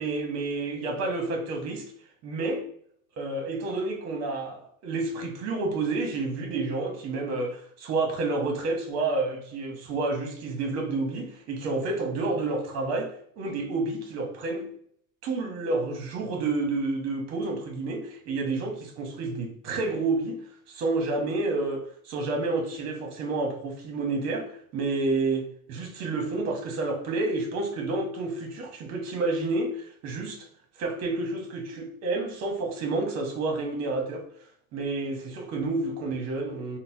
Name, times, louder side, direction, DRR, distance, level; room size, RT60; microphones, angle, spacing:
voice 1, 0.0-1.9 2.2-2.6 3.2-14.7 15.2-20.4 20.7-30.5 30.8-34.2 34.7-36.8, right 3 dB, 40° right, 0.8 m, -29 dB
3.9 x 2.1 x 2.6 m
supercardioid pair, 140°, 39 cm